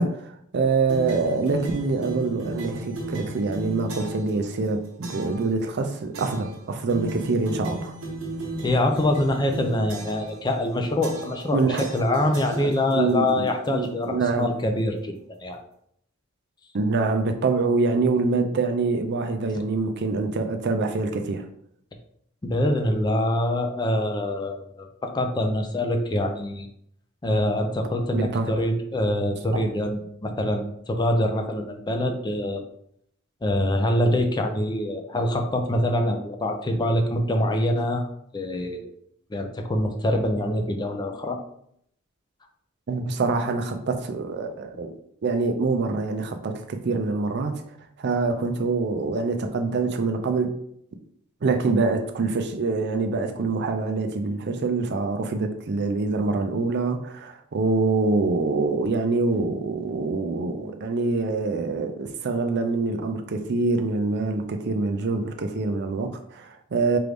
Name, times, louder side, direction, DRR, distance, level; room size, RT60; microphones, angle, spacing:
voice 1, 0.0-7.9 11.5-11.9 12.6-14.5 16.7-21.5 28.1-28.5 29.5-29.6 42.9-45.0 45.2-47.6 48.0-50.6 51.4-67.0, right 3 dB, 55° right, 0.5 m, -25 dB
sound 1, 0.9-4.3 5.0-5.4 6.1-6.6 6.9-10.4 11.0-11.5 11.8-13.1, right 2 dB, 80° right, 1.0 m, -35 dB
voice 2, 8.6-15.1 15.4-15.6 22.4-26.7 27.2-32.6 33.4-38.1 38.3-38.9 39.3-41.4, left 1 dB, 20° left, 0.4 m, -25 dB
4.6 x 2.5 x 3.4 m
head